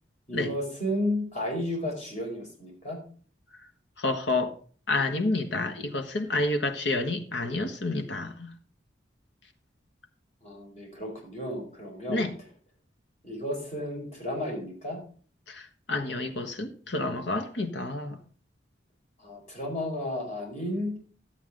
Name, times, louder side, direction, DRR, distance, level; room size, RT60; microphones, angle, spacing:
voice 1, 0.3-3.0 10.4-12.2 13.2-15.0 19.2-21.0, left 1 dB, 40° left, 4.9 m, -33 dB
voice 2, 4.0-4.5 4.9-8.5 12.1-12.3 15.5-18.2, left 2 dB, 75° left, 1.4 m, -29 dB
12.5 x 8.2 x 3.8 m
head